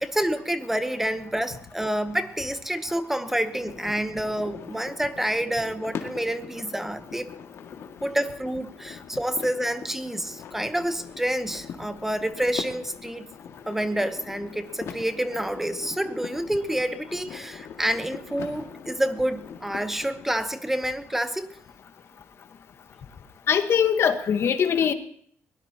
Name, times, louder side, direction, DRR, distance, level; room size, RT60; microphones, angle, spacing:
voice 1, 0.0-7.3 8.0-13.3 13.7-21.5, right 1 dB, 5° right, 9 dB, 0.9 m, -28 dB
sound 1, 3.2-20.3, left 7 dB, 70° left, 2.0 m, -42 dB
voice 2, 23.5-24.9, left 7 dB, 55° left, 8 dB, 1.3 m, -21 dB
22.0 x 18.5 x 2.9 m, 0.63 s
cardioid pair, 125°, 5 cm